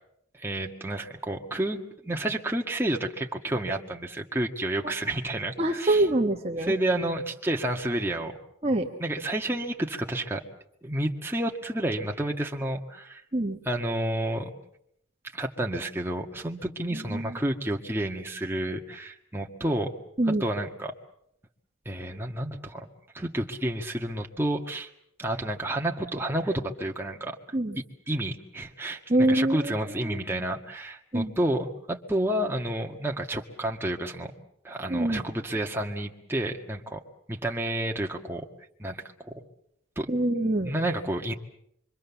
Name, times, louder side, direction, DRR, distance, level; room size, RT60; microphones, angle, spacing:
voice 1, 0.3-6.1 6.6-8.3 9.0-10.4 10.8-13.2 13.6-14.5 15.3-19.9 20.3-20.9 21.9-22.9 23.1-24.9 25.2-27.4 27.8-34.3 34.6-37.0 37.3-38.5 38.8-39.3 40.0-40.1 40.6-41.3, right 1 dB, 10° right, 1 dB, 1.8 m, -30 dB
voice 2, 5.6-6.7 8.6-8.9 13.3-13.6 17.1-17.3 20.2-20.4 27.5-27.8 29.1-29.6 31.1-31.3 34.9-35.2 40.1-40.7, right 1 dB, 30° right, 2 dB, 1.4 m, -24 dB
26.0 x 24.5 x 7.2 m, 0.75 s
head